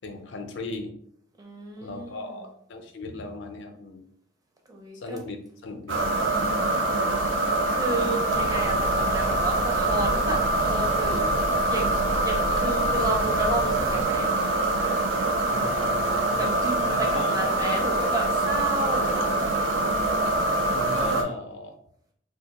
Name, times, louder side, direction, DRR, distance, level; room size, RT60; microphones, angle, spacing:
voice 1, 0.0-0.9 1.8-4.0 4.9-5.4 5.6-6.6 15.5-16.4 16.8-17.4 20.6-21.8, left 3 dB, 70° left, 5 dB, 0.5 m, -37 dB
voice 2, 1.4-2.3 4.7-5.2 7.6-11.4 11.6-14.3 16.4-19.5, right 2 dB, 20° right, 0 dB, 0.5 m, -32 dB
sound 1, 5.9-21.2, right 2 dB, 80° right, 0.5 m, -24 dB
sound 2, 8.3-14.0, equal, 55° right, 1.0 m, -35 dB
2.5 x 2.3 x 4.0 m, 0.68 s
head